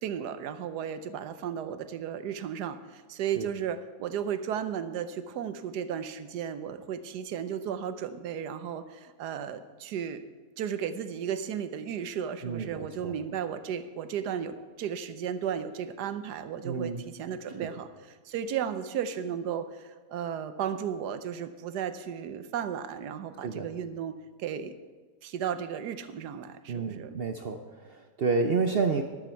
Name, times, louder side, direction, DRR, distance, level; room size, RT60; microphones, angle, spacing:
voice 1, 0.0-10.2 10.6-24.7 25.2-27.2, right 8 dB, 90° right, 11 dB, 1.3 m, -34 dB
voice 2, 12.4-13.2 16.6-17.0 17.6-17.7 23.4-23.7 26.7-29.0, right 4 dB, 55° right, 6 dB, 0.6 m, -30 dB
13.0 x 11.5 x 4.5 m, 1.4 s
omnidirectional pair, 1.7 m